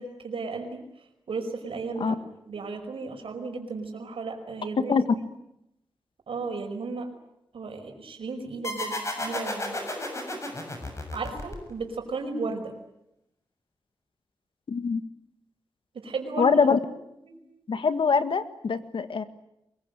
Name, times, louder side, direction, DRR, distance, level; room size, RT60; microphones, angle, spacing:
voice 1, 0.0-5.3 6.3-7.1 7.5-9.8 11.1-12.7 15.9-16.5 17.2-17.4, right 4 dB, 85° right, 4 dB, 5.4 m, -35 dB
sound 1, 8.6-11.9, left 1 dB, 30° left, 6.9 m, -33 dB
voice 2, 14.7-15.0 16.4-16.8 17.7-19.2, left 5 dB, 70° left, 11 dB, 1.8 m, -23 dB
24.5 x 22.5 x 9.1 m, 0.82 s
wide cardioid pair, 95°, 9 cm